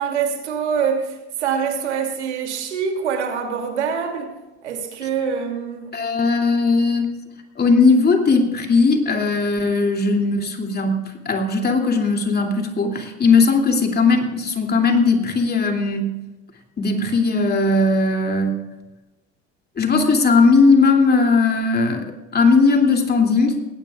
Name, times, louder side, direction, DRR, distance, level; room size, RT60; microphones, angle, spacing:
voice 1, 0.0-4.4 4.6-6.0, right 7 dB, 80° right, 2.8 m, -25 dB
voice 2, 5.9-7.1 7.6-16.1 16.8-18.6 19.8-23.6, left 4 dB, 30° left, 2.8 m, -18 dB
20.0 x 17.5 x 2.4 m
hypercardioid pair, 75°, 34 cm